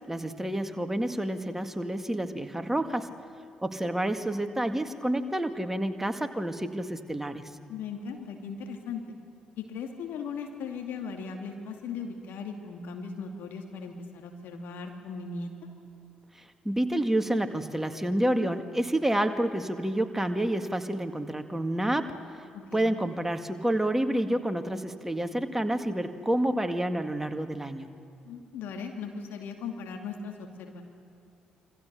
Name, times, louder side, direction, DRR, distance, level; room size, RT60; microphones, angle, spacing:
voice 1, 0.1-3.1 3.6-7.4 16.7-22.1 22.7-27.9, right 1 dB, 10° right, 7 dB, 2.0 m, -29 dB
voice 2, 7.7-9.0 9.6-15.5 22.5-22.9 28.2-30.8, left 5 dB, 60° left, 3 dB, 2.4 m, -38 dB
27.0 x 25.5 x 6.8 m, 2.6 s
figure-of-eight pair, 40°, 4 cm